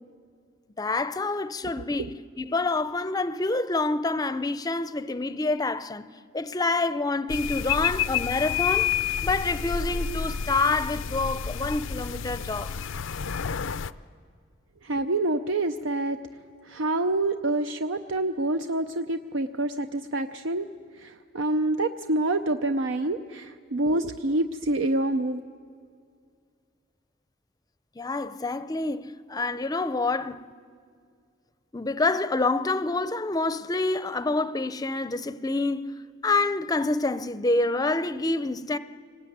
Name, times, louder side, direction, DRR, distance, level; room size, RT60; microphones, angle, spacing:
voice 1, 0.8-6.1 6.3-8.9 9.2-12.7 23.9-24.0 28.0-30.5 31.7-38.8, left 3 dB, 20° left, 0.5 m, -27 dB
sound 1, 7.3-13.9, left 8 dB, 85° left, 0.5 m, -29 dB
voice 2, 14.8-16.2 16.7-20.7 21.0-25.4, right 2 dB, 80° right, 0.6 m, -27 dB
24.5 x 19.5 x 9.3 m
head